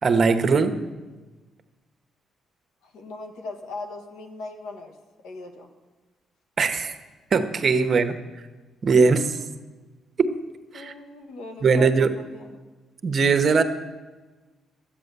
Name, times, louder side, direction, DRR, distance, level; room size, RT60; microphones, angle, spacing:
voice 1, 0.0-0.8 6.6-7.0 7.3-8.2 8.8-9.4 10.2-10.3 10.7-10.9 11.6-12.1 13.0-13.6, right 4 dB, 45° right, 8 dB, 1.0 m, -20 dB
voice 2, 2.8-4.9 5.2-5.7 10.7-12.6, left 3 dB, 85° left, 4 dB, 1.4 m, -38 dB
13.0 x 8.8 x 6.8 m, 1.2 s
cardioid pair, 90°, 0 cm